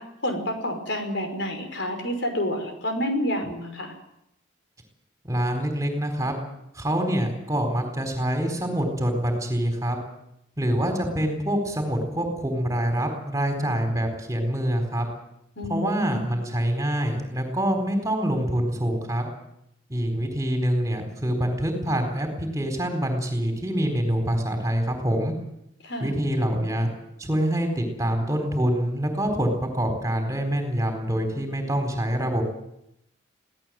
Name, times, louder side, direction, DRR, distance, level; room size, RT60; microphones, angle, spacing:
voice 1, 0.0-3.9 15.6-16.3 25.8-26.1, equal, 60° left, 5 dB, 5.5 m, -29 dB
voice 2, 5.2-6.3 6.7-10.0 10.6-15.1 15.7-19.3 19.9-25.3 26.0-26.9 27.2-32.4, equal, 15° right, 4 dB, 4.3 m, -25 dB
25.0 x 17.5 x 7.8 m, 0.81 s
head